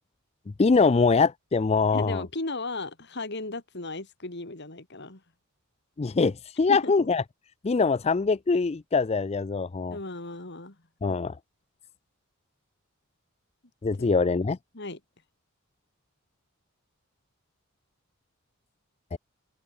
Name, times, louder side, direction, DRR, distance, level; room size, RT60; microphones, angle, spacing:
voice 1, 0.6-2.2 6.0-7.2 7.6-10.0 11.0-11.4 13.8-14.6 19.1-19.2, left 4 dB, 30° left, 0.4 m, -23 dB
voice 2, 1.9-5.2 6.7-6.9 9.9-10.8 11.0-11.1 14.7-15.0, left 2 dB, 50° left, 2.8 m, -36 dB
open air
head